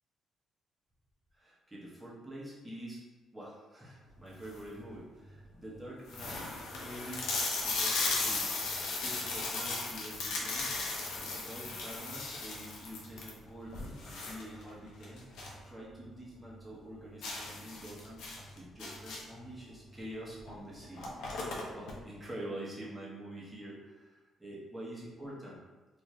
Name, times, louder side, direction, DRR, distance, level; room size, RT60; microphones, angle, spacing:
voice 1, 1.3-3.0 3.3-7.3 7.6-8.5 9.0-10.9 11.2-21.1 21.7-25.6, right 1 dB, 10° right, -6 dB, 0.9 m, -46 dB
sound 1, 4.2-4.7 5.4-5.5 5.7-5.8 6.1-15.6 16.0-16.1 16.5-16.6 17.2-19.4 20.4-20.5 20.8-21.9, left 3 dB, 85° left, 0.6 m, -36 dB
2.6 x 2.4 x 3.1 m, 1.2 s
cardioid pair, 90°, 0 cm